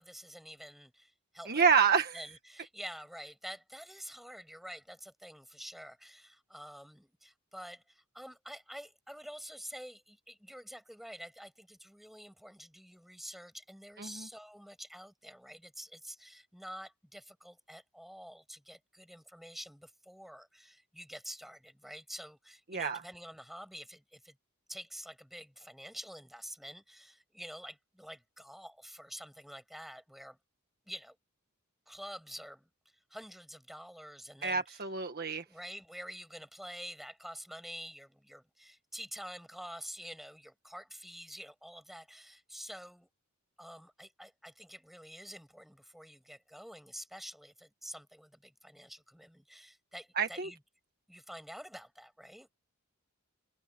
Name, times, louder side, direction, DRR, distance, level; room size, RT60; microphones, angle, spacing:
voice 1, 0.0-1.9 2.1-24.4 24.7-30.4 30.9-31.2 31.9-32.7 33.1-34.8 35.5-43.1 43.6-50.6 51.1-52.5, equal, ahead, 7.9 m, -48 dB
voice 2, 1.5-2.2 14.0-14.3 22.7-23.0 34.4-35.4 50.2-50.5, right 6 dB, 45° right, 1.5 m, -28 dB
head